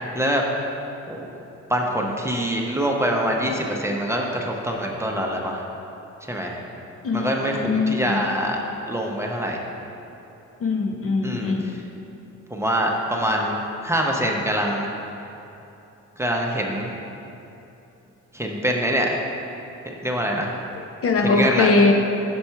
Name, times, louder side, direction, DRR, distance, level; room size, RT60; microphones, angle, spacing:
voice 1, 1.7-5.6 6.3-6.6 7.1-8.6 8.9-9.6 11.2-11.5 12.5-14.9 16.2-16.9 18.3-19.2 19.9-20.5 21.2-21.7, equal, 10° right, 0 dB, 0.6 m, -24 dB
voice 2, 7.0-8.2 10.6-11.8 20.7-21.9, left 3 dB, 50° left, 2 dB, 0.7 m, -21 dB
6.9 x 4.3 x 4.5 m, 2.9 s
cardioid pair, 90°, 30 cm